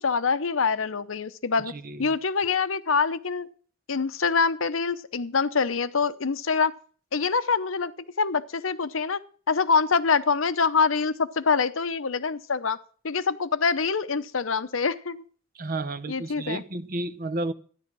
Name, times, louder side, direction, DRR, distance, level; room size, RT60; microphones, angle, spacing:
voice 1, 0.0-1.7 2.0-3.5 3.9-6.7 7.1-7.9 8.2-9.2 9.5-12.8 13.0-15.2 16.1-16.6, left 5 dB, 85° left, 0.8 m, -25 dB
voice 2, 1.7-2.0 15.6-17.5, right 2 dB, 45° right, 0.9 m, -32 dB
13.5 x 10.5 x 6.2 m
head